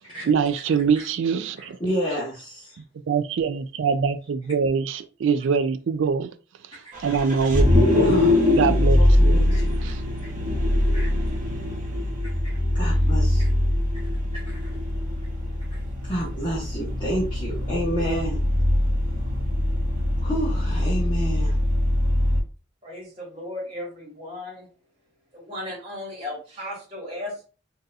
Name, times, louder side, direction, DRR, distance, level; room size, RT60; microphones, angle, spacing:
voice 1, 0.2-1.8 3.1-6.3 7.0-7.8 8.1-8.2 8.5-9.5 9.8-10.0, right 6 dB, 70° right, 0.3 m, -23 dB
voice 2, 1.6-2.8 7.8-9.9 10.9-11.1 12.7-13.5 14.3-14.8 15.7-18.4 20.2-21.6, right 1 dB, 25° left, 1.0 m, -30 dB
Vehicle, 6.9-22.4, left 1 dB, 40° right, 0.8 m, -22 dB
voice 3, 22.8-24.7 25.3-27.5, left 1 dB, 25° right, 1.5 m, -35 dB
3.9 x 2.6 x 2.3 m
head